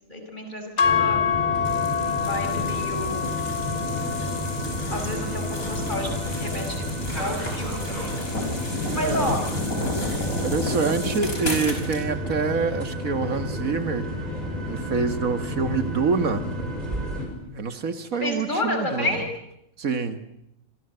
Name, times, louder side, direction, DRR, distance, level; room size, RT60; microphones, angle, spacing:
voice 1, 0.1-1.2 2.2-3.3 4.9-6.8 7.1-8.6 8.9-9.5 18.2-19.2, left 1 dB, 35° left, 4 dB, 5.9 m, -30 dB
sound 1, 0.8-9.0, left 7 dB, 55° left, 1.7 m, -29 dB
sound 2, 0.8-17.3, equal, 30° right, 6.9 m, -31 dB
sound 3, 1.6-12.0, left 2 dB, 80° left, 5.8 m, -32 dB
voice 2, 8.9-9.3 10.3-14.1 14.7-16.4 17.5-19.1 19.8-20.2, right 5 dB, 80° right, 9 dB, 2.0 m, -26 dB
27.0 x 25.5 x 8.0 m, 0.83 s
omnidirectional pair, 1.4 m